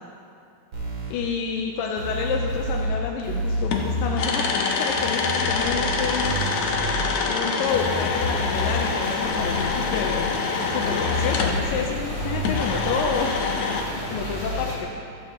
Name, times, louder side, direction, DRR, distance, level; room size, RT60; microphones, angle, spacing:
sound 1, 0.7-1.1 2.0-2.9 3.2-4.2 5.0-7.1 7.7-8.8 9.2-10.2 10.7-12.7, equal, 55° right, 3.8 m, -30 dB
voice 1, 1.1-6.5 7.3-10.4 10.7-13.4 14.1-14.9, left 6 dB, 85° left, 0 dB, 2.4 m, -29 dB
sound 2, 3.2-3.3 3.7-11.6 12.4-13.8, left 4 dB, 65° left, 1.8 m, -26 dB
sound 3, 7.7-14.8, equal, 20° left, 2.2 m, -33 dB
14.5 x 13.0 x 2.9 m, 2.6 s
omnidirectional pair, 4.0 m